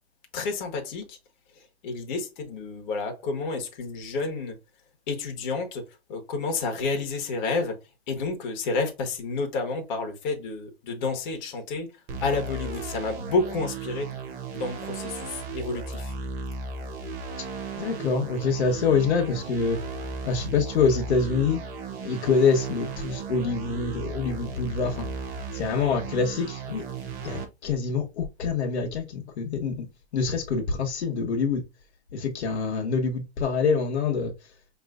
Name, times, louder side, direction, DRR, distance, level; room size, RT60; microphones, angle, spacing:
voice 1, 0.3-1.2 1.5-4.6 5.1-5.8 6.1-7.7 8.1-11.9 12.2-14.1 14.5-16.1, left 3 dB, 45° left, 1.3 m, -30 dB
sound 1, 12.1-27.5, right 4 dB, 25° right, 0.6 m, -36 dB
voice 2, 17.7-19.8 20.2-21.6 22.0-25.1 25.5-26.8 27.2-29.9 30.1-31.6 32.1-34.3, left 5 dB, 85° left, 1.2 m, -25 dB
5.6 x 3.0 x 2.5 m
hypercardioid pair, 160°, 33 cm